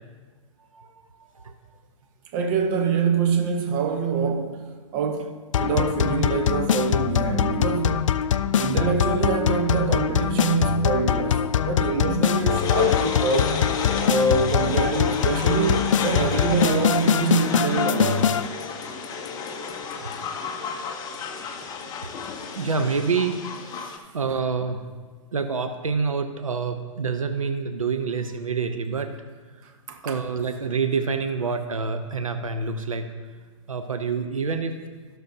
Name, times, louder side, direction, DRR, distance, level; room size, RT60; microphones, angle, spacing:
voice 1, 0.6-1.5 11.4-11.6 11.8-11.9 20.0-20.1 21.8-22.1 22.5-23.4 23.7-23.9 24.1-24.8 25.3-29.1 29.6-29.7 30.0-33.1 33.7-34.8, right 5 dB, 85° right, 0.7 m, -27 dB
voice 2, 2.3-4.6 4.9-8.1 8.5-13.6 14.0-18.4 29.9-30.2, right 5 dB, 40° right, 1.0 m, -25 dB
sound 1, 5.5-18.5, left 8 dB, 70° left, 0.4 m, -23 dB
sound 2, 12.5-24.0, left 6 dB, 20° left, 0.8 m, -31 dB
16.5 x 6.3 x 2.7 m
hypercardioid pair, 120°, 17 cm